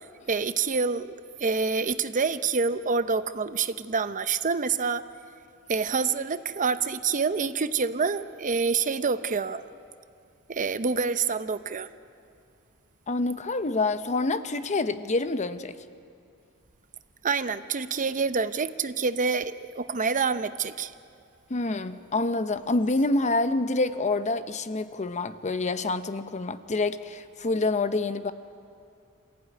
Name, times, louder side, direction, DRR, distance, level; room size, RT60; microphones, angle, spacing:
voice 1, 0.3-5.0 5.7-9.6 10.5-11.9 17.2-20.9, right 5 dB, 35° right, 0.7 m, -27 dB
voice 2, 13.1-15.8 21.5-28.3, left 2 dB, 35° left, 0.7 m, -27 dB
26.5 x 15.0 x 9.5 m
head